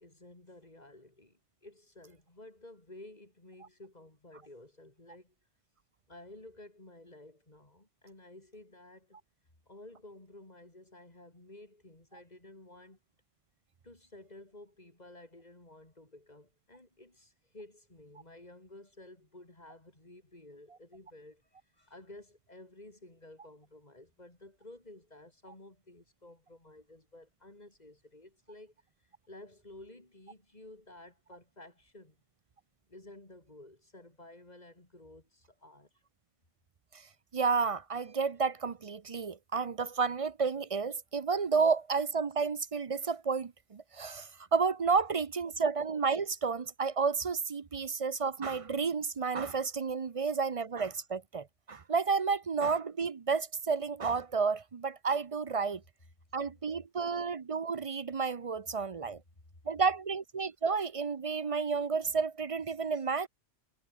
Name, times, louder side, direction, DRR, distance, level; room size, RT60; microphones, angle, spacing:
voice 1, 0.0-5.3 6.1-9.2 9.7-13.0 13.8-28.7 29.0-32.2 32.9-35.9, left 1 dB, 35° left, 4.0 m, -53 dB
voice 2, 37.3-55.8 56.3-59.2 59.7-63.3, right 5 dB, 40° right, 0.6 m, -31 dB
omnidirectional pair, 1.2 m